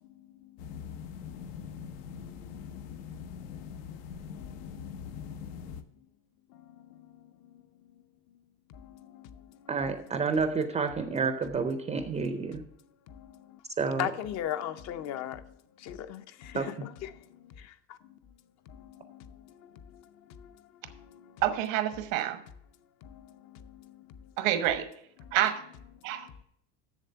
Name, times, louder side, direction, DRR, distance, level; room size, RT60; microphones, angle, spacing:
voice 1, 0.0-0.6 2.2-3.3 4.4-5.6 6.5-7.6 7.9-8.0 8.7-9.7 13.1-13.6 14.0-18.2 18.7-21.4 23.0-24.3 25.2-25.4 26.1-26.3, left 11 dB, 45° left, 0.6 m, -42 dB
sound 1, 0.6-5.8, left 7 dB, 80° left, 0.9 m, -42 dB
voice 2, 9.7-12.6 13.8-14.1 16.5-16.9, right 4 dB, 15° right, 0.5 m, -30 dB
voice 3, 21.4-22.4 24.4-24.9 25.3-25.7 26.0-26.3, right 12 dB, 85° right, 1.1 m, -28 dB
7.3 x 7.2 x 6.7 m
cardioid pair, 150°, 38 cm